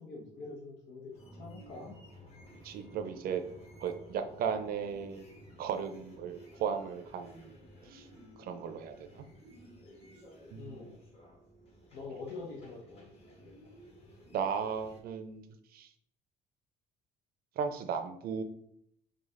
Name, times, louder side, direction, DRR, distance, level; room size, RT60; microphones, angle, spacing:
voice 1, 0.0-1.9 10.5-11.0 11.9-13.5, left 3 dB, 75° left, -2 dB, 1.0 m, -45 dB
sound 1, 1.1-15.0, equal, 35° left, 1.4 m, -55 dB
voice 2, 2.6-3.4 3.8-5.2 5.6-7.6 7.8-8.1 8.4-9.3 10.5-10.8 14.3-15.5 15.7-15.9 17.6-18.4, right 7 dB, 60° right, 8 dB, 0.6 m, -36 dB
5.0 x 2.4 x 3.7 m, 0.70 s
cardioid pair, 110°, 17 cm